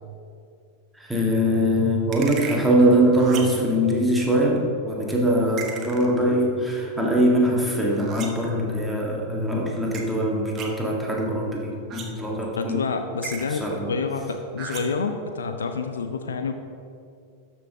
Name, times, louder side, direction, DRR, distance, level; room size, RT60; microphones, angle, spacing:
voice 1, 1.0-12.8 13.5-13.9, equal, 5° right, -3 dB, 1.7 m, -22 dB
sound 1, 2.1-2.7 3.1-3.7 5.6-6.3 7.9-8.5 9.9-10.0 10.6-10.7 11.9-12.3 13.2-13.7 14.6-15.1, right 6 dB, 30° right, 1.1 m, -36 dB
voice 2, 12.5-16.5, left 4 dB, 70° left, 7 dB, 0.5 m, -28 dB
12.5 x 5.6 x 3.6 m, 2.4 s
figure-of-eight pair, 90°, 0 cm